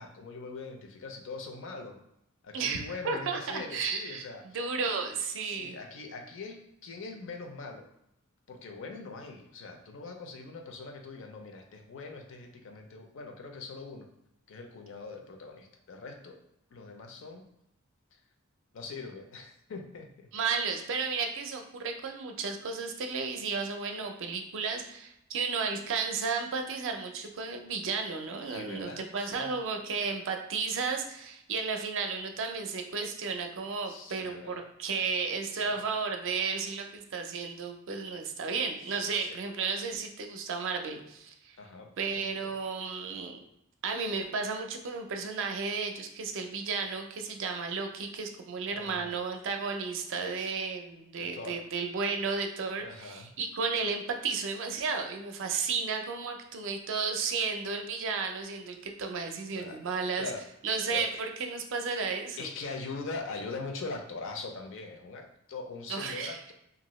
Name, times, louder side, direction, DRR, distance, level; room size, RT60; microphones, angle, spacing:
voice 1, 0.0-2.0 2.4-4.6 5.4-7.9 8.5-14.1 14.5-16.4 16.7-17.5 18.1-18.2 18.7-20.3 28.5-29.6 33.8-34.6 35.5-35.9 38.9-39.4 41.6-42.5 48.7-49.1 50.4-50.5 51.2-51.6 52.8-53.3 59.5-59.8 60.2-60.5 60.9-61.1 62.4-66.5, left 3 dB, 65° left, 4 dB, 0.5 m, -42 dB
voice 2, 2.5-4.2 4.5-5.8 20.3-41.6 42.0-43.4 43.8-60.3 60.6-61.1 61.4-62.5 65.9-66.4, right 5 dB, 60° right, 5 dB, 0.4 m, -33 dB
2.7 x 2.5 x 3.0 m, 0.80 s
head